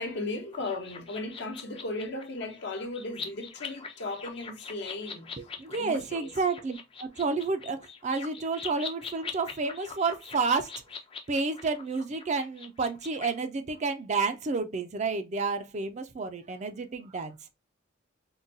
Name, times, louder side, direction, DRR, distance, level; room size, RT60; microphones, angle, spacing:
voice 1, 0.0-5.3 5.8-6.3, left 2 dB, 60° left, 0.8 m, -36 dB
sound 1, 0.5-13.3, left 5 dB, 30° left, 0.5 m, -43 dB
voice 2, 5.4-10.7 11.3-17.5, right 4 dB, 35° right, 0.4 m, -30 dB
3.7 x 2.2 x 2.6 m
head